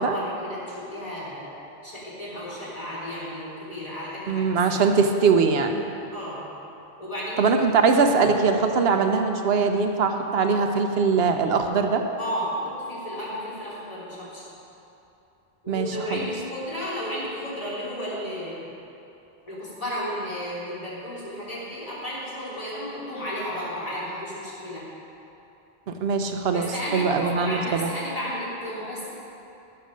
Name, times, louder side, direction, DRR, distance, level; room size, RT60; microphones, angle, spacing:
voice 1, 0.0-1.5 1.8-4.6 6.1-6.5 7.0-7.5 12.2-14.4 15.6-18.6 19.5-24.8 26.5-29.1, equal, 35° left, -9 dB, 3.3 m, -33 dB
voice 2, 4.3-5.8 7.4-12.0 15.7-16.2 25.9-27.9, right 5 dB, 75° right, 5 dB, 1.0 m, -22 dB
15.0 x 7.0 x 5.1 m, 2.9 s
omnidirectional pair, 1.1 m